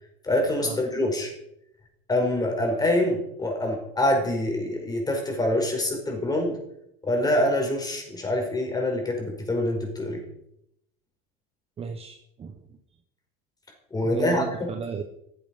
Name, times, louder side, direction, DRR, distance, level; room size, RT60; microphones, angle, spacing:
voice 1, 0.2-1.3 2.1-6.6 7.0-10.2 13.9-14.7, left 1 dB, 15° left, 2 dB, 4.9 m, -25 dB
voice 2, 11.8-12.6 14.0-15.0, right 6 dB, 20° right, 6 dB, 1.1 m, -33 dB
15.5 x 15.0 x 5.4 m, 0.77 s
cardioid pair, 165°, 30 cm